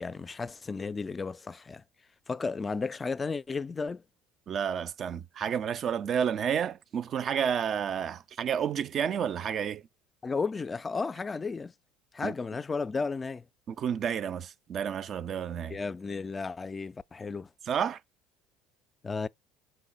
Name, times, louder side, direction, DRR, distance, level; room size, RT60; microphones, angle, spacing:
voice 1, 0.0-1.8 2.3-4.0 10.2-11.7 12.1-13.4 15.7-17.5 19.0-19.3, left 4 dB, 25° left, 0.3 m, -33 dB
voice 2, 4.5-9.9 12.2-12.3 13.7-15.8 17.6-18.0, right 8 dB, 45° right, 0.4 m, -30 dB
5.3 x 2.2 x 3.9 m
hypercardioid pair, 65°, 0 cm